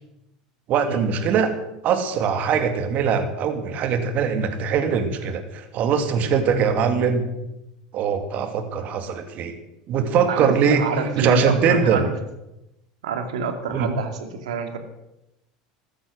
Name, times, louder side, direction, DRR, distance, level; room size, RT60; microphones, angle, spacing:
voice 1, 0.7-1.5 1.8-7.3 7.9-9.5 9.9-10.8 11.2-12.0 13.7-13.9, right 6 dB, 50° right, 7 dB, 2.5 m, -21 dB
voice 2, 10.3-12.1 13.0-14.8, right 5 dB, 80° right, 7 dB, 2.4 m, -27 dB
15.0 x 13.5 x 6.4 m, 0.90 s
hypercardioid pair, 85°, 3 cm